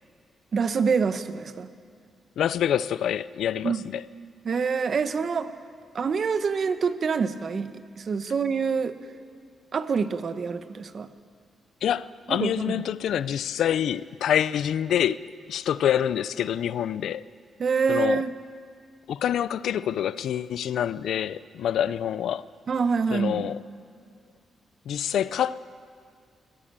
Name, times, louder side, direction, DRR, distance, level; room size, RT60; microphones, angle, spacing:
voice 1, 0.5-1.7 3.6-3.8 4.4-5.5 5.9-9.0 9.7-11.1 12.3-12.8 17.6-18.4 22.7-23.5, right 5 dB, 40° right, 0.9 m, -26 dB
voice 2, 2.4-4.0 11.8-15.2 15.5-17.2 17.9-18.2 19.1-22.4 23.1-23.6 24.9-25.6, left 10 dB, 75° left, 0.5 m, -26 dB
22.5 x 14.5 x 8.9 m
cardioid pair, 150°, 0 cm